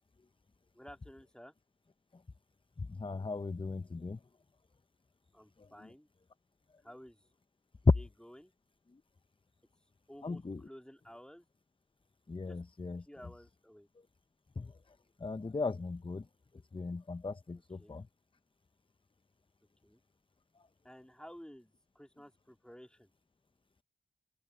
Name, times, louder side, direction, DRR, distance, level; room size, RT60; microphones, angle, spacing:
voice 1, 0.7-1.5 5.3-6.1 6.8-7.2 8.0-8.5 10.1-11.5 12.5-12.6 13.1-13.9 17.8-18.0 19.8-20.0 20.8-23.1, equal, 5° left, 2.6 m, -53 dB
voice 2, 2.8-4.2 5.6-5.9 7.8-8.0 8.9-9.0 10.2-10.7 12.3-13.1 14.6-16.3 16.7-18.1 20.6-20.7, left 3 dB, 30° left, 0.6 m, -35 dB
open air
wide cardioid pair, 50°, 19 cm